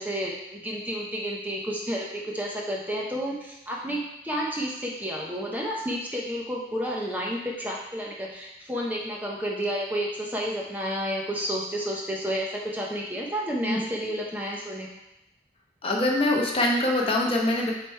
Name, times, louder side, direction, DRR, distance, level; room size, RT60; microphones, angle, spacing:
voice 1, 0.0-14.9, equal, 10° right, -2 dB, 0.7 m, -31 dB
voice 2, 15.8-17.7, left 1 dB, 30° left, 0 dB, 0.8 m, -24 dB
7.4 x 3.3 x 4.5 m, 0.90 s
head